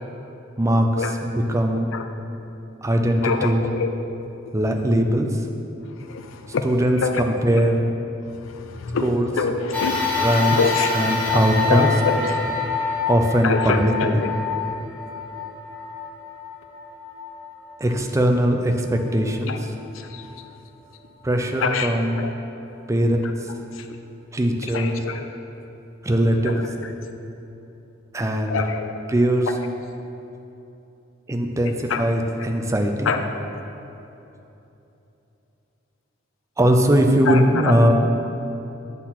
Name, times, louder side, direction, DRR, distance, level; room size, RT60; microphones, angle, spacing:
voice 1, 0.6-1.9 2.8-3.6 4.5-5.3 6.6-7.8 9.0-9.3 10.2-10.6 10.9-11.9 13.1-14.2 17.8-19.6 21.2-22.2 22.9-23.3 24.3-25.0 26.0-26.6 28.1-28.6 29.1-29.5 31.3-33.1 36.6-37.9, equal, 15° right, 4 dB, 0.5 m, -20 dB
voice 2, 1.7-2.1 3.2-3.9 5.9-6.7 7.0-7.3 7.5-7.6 8.4-10.3 10.6-10.9 11.3-11.4 11.7-12.5 13.4-14.3 19.5-19.6 19.9-20.2 21.6-22.3 23.2-23.3 23.7-24.0 24.7-25.3 26.4-26.7 28.5-28.9 29.5-29.6 31.6-32.0 33.0-33.2 37.3-37.7, left 5 dB, 80° left, 6 dB, 0.5 m, -26 dB
sound 1, 9.7-18.3 18.9-19.0 20.2-20.3, left 4 dB, 10° left, 1.3 m, -27 dB
8.1 x 4.1 x 5.9 m, 2.9 s
head